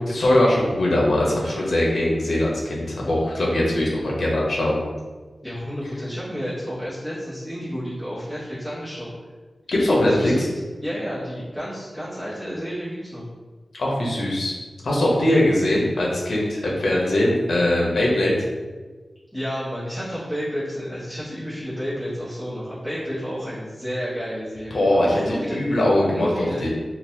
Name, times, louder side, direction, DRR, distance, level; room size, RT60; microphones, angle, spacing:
voice 1, 0.1-4.8 9.7-10.5 13.7-14.5 14.8-18.3 24.7-26.7, left 1 dB, 85° left, -3 dB, 0.9 m, -21 dB
voice 2, 5.4-9.1 10.0-10.5 10.8-13.3 19.3-25.6 26.0-26.6, equal, 5° left, -13 dB, 1.1 m, -31 dB
3.9 x 2.4 x 2.7 m, 1.3 s
wide cardioid pair, 95°, 0 cm